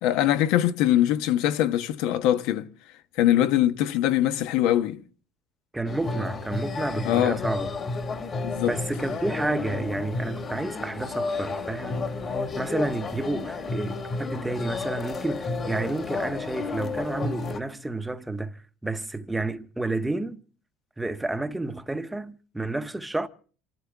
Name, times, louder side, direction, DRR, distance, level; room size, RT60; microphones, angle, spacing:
voice 1, 0.0-2.7 3.2-5.0 7.0-7.4 8.4-8.7, left 12 dB, 75° left, 1.2 m, -22 dB
voice 2, 5.7-7.7 8.6-12.1 12.6-18.6 18.8-20.4 21.0-23.3, right 2 dB, 5° right, 0.9 m, -30 dB
sound 1, 5.9-17.6, left 3 dB, 30° left, 1.7 m, -31 dB
27.5 x 13.5 x 3.6 m
cardioid pair, 140°, 0 cm